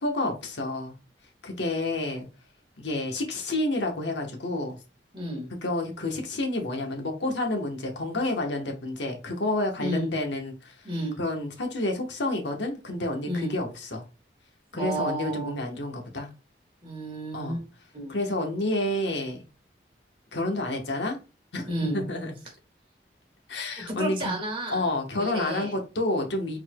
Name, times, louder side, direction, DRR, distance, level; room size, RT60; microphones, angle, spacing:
voice 1, 0.0-0.9 1.4-2.3 2.8-4.8 5.6-10.7 11.2-14.0 14.7-16.3 17.3-17.6 18.1-19.4 20.3-21.2 21.5-22.3 23.5-24.4 24.7-26.6, left 2 dB, 85° left, 1.1 m, -29 dB
voice 2, 5.1-5.5 9.8-10.1 10.8-11.2 13.2-13.5 14.7-15.6 16.8-17.6 17.9-18.2 21.7-22.0 24.0-24.9 25.2-25.8, right 1 dB, 30° right, 1.9 m, -31 dB
4.6 x 4.1 x 2.2 m
head